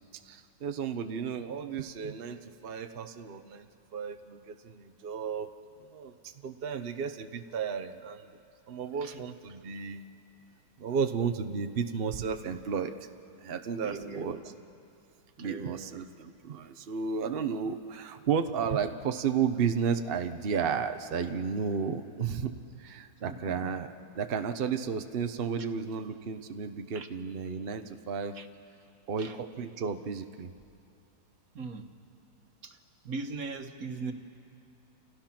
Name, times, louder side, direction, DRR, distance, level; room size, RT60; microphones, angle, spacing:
voice 1, 0.0-3.7 3.9-5.5 5.9-8.3 8.7-10.0 10.8-12.9 13.4-14.5 15.4-22.5 22.8-28.4 29.1-30.5, right 6 dB, 70° right, 7 dB, 0.5 m, -33 dB
voice 2, 13.8-14.3 15.4-15.9 23.3-23.7 26.9-27.1 28.4-28.5 29.2-29.3 31.5-31.9 32.6-32.7 33.0-34.1, right 4 dB, 45° right, 6 dB, 1.6 m, -39 dB
29.0 x 28.5 x 6.0 m, 2.7 s
omnidirectional pair, 2.2 m